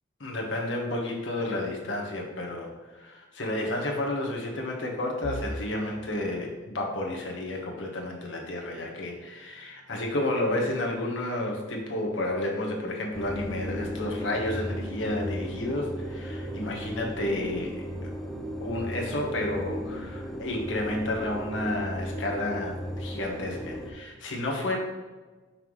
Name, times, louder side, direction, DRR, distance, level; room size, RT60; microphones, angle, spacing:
voice 1, 0.2-17.8 18.6-24.8, left 1 dB, 80° left, -1 dB, 1.3 m, -31 dB
sound 1, 5.2-17.1 17.5-17.8 18.1-18.3 19.2-19.6, equal, 40° left, 0.6 m, -48 dB
sound 2, 13.1-23.9, equal, ahead, 0.5 m, -36 dB
5.7 x 5.5 x 3.1 m, 1.3 s
head